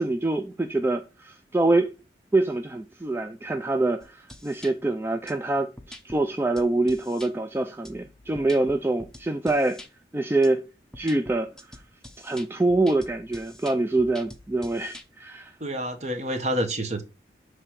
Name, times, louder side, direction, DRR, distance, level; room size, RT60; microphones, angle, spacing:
voice 1, 0.0-1.9 2.3-9.8 10.1-10.6 11.0-11.8 12.2-15.5, right 2 dB, 15° right, 0.3 m, -25 dB
sound 1, 4.0-4.7 5.3-5.4 5.8-6.2 6.6-7.3 7.8-9.9 10.4-10.5 10.9-15.0, left 1 dB, 5° left, 0.7 m, -45 dB
voice 2, 15.6-17.0, right 1 dB, 40° right, 1.1 m, -28 dB
6.5 x 3.3 x 5.8 m
head